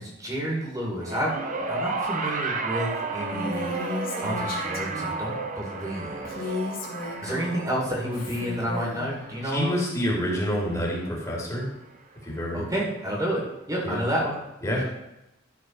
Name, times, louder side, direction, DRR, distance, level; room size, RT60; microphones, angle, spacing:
voice 1, 0.0-1.3 1.7-3.7 4.2-6.5 7.2-9.7 12.5-13.4 13.7-14.3, equal, 20° right, -2 dB, 2.6 m, -30 dB
sound 1, 1.0-11.5 12.5-12.6, right 3 dB, 45° right, 1.2 m, -33 dB
Female speech woman speaking, 3.3-5.2 6.2-7.6 8.1-9.1, left 2 dB, 50° left, 2.4 m, -34 dB
voice 2, 9.4-11.7 12.2-12.7 13.8-14.0 14.6-14.9, equal, 15° left, -3 dB, 2.9 m, -27 dB
12.5 x 4.7 x 6.0 m, 0.91 s
head